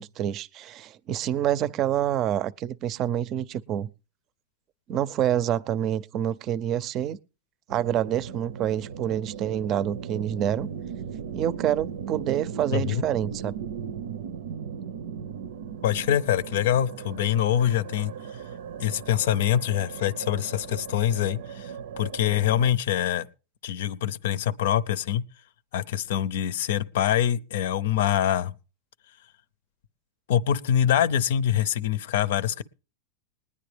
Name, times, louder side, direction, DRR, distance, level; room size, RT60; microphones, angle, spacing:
voice 1, 0.0-3.9 4.9-7.2 7.7-10.7 11.3-13.5, right 11 dB, 40° right, 0.5 m, -27 dB
sound 1, 7.7-22.7, right 7 dB, 85° right, 0.7 m, -37 dB
voice 2, 12.7-13.1 15.8-18.1 18.8-23.3 23.6-25.2 25.7-28.5 30.3-32.6, left 10 dB, 80° left, 0.6 m, -24 dB
20.5 x 9.8 x 3.4 m
supercardioid pair, 135°, 0 cm